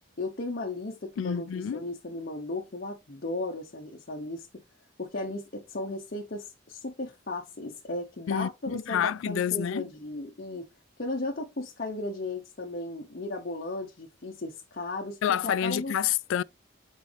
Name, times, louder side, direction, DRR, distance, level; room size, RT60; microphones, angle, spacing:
voice 1, 0.2-4.5 5.0-10.7 11.0-15.9, left 2 dB, 50° left, 0.9 m, -35 dB
voice 2, 1.2-1.9 8.3-9.9 15.2-16.4, left 9 dB, 75° left, 0.3 m, -28 dB
7.4 x 4.1 x 3.4 m
head